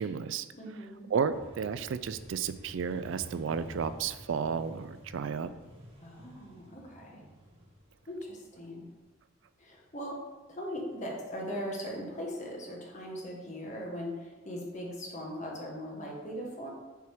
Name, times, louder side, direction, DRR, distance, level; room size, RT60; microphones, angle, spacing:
voice 1, 0.0-0.5 1.1-5.5, right 6 dB, 65° right, 13 dB, 0.3 m, -32 dB
voice 2, 0.5-1.1 6.0-7.2 8.1-8.9 9.6-10.2 10.5-16.7, equal, 35° left, -2 dB, 1.5 m, -39 dB
Motorcycle, 1.3-9.0, equal, 30° right, 1.2 m, -50 dB
6.9 x 4.5 x 4.8 m, 1.2 s
head